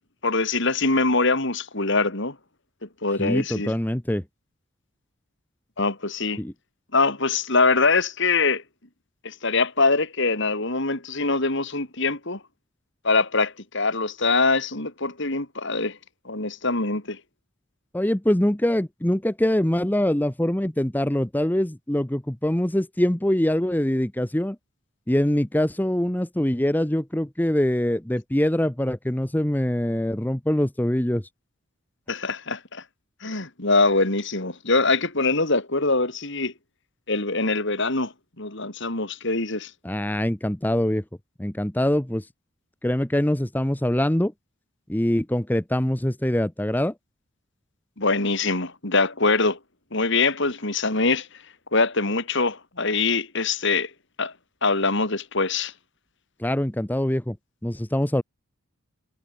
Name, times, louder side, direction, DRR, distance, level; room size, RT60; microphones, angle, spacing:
voice 1, 0.2-2.4 2.8-3.7 5.8-6.4 6.9-8.6 9.2-12.4 13.0-16.0 16.3-17.2 32.1-32.8 33.2-36.5 37.1-38.1 38.4-39.7 48.0-49.6 49.9-51.3 51.7-53.9 54.2-54.3 54.6-55.7, left 3 dB, 60° left, 3.7 m, -23 dB
voice 2, 3.2-4.2 6.4-6.5 17.9-24.6 25.1-31.2 39.8-41.0 41.4-42.3 42.8-44.3 44.9-46.9 56.4-57.4 57.6-58.2, left 1 dB, 10° left, 0.8 m, -23 dB
head